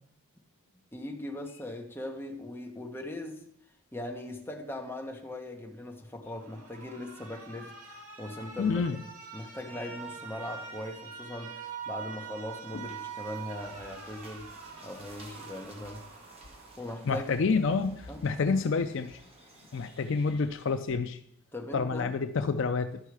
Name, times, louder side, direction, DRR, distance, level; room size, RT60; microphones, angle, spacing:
voice 1, 0.9-3.4 3.9-8.8 9.3-14.5 14.8-16.0 16.8-17.2 18.1-18.2 21.5-22.1, left 1 dB, 10° left, 1 dB, 1.1 m, -40 dB
Alarm, 6.3-17.3, right 6 dB, 90° right, 1.6 m, -44 dB
voice 2, 8.6-9.0 12.7-12.9 17.1-19.2 19.7-21.2 21.7-23.0, left 4 dB, 55° left, 9 dB, 0.4 m, -28 dB
sound 1, 12.5-20.9, equal, 25° right, 1.6 m, -54 dB
11.5 x 5.4 x 4.8 m, 0.71 s
head